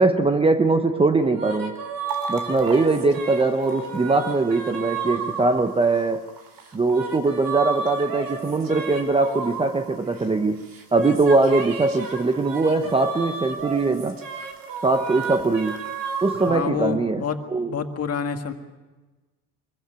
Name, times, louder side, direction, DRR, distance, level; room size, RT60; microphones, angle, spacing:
voice 1, 0.0-1.8 2.3-6.3 6.7-10.6 10.9-14.2 14.8-15.8 16.2-17.2 17.5-17.7, right 3 dB, 15° right, 8 dB, 0.7 m, -21 dB
sound 1, 1.2-6.2 6.6-10.4 10.7-16.6, right 4 dB, 50° right, 3.5 m, -33 dB
sound 2, 2.1-16.5, right 7 dB, 65° right, 3.5 m, -46 dB
voice 2, 16.5-17.4 17.7-18.5, left 7 dB, 35° left, 5 dB, 1.9 m, -27 dB
23.5 x 15.0 x 9.1 m, 1.2 s
cardioid pair, 125°, 43 cm